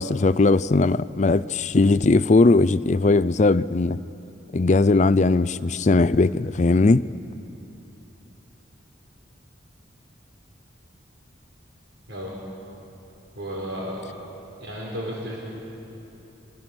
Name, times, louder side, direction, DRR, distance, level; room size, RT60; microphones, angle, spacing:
voice 1, 0.0-4.0 4.5-7.0, left 3 dB, 40° left, 0.4 m, -19 dB
voice 2, 12.1-12.4 13.3-14.1 14.6-15.4, equal, 70° right, 4.7 m, -33 dB
26.0 x 25.5 x 6.2 m
head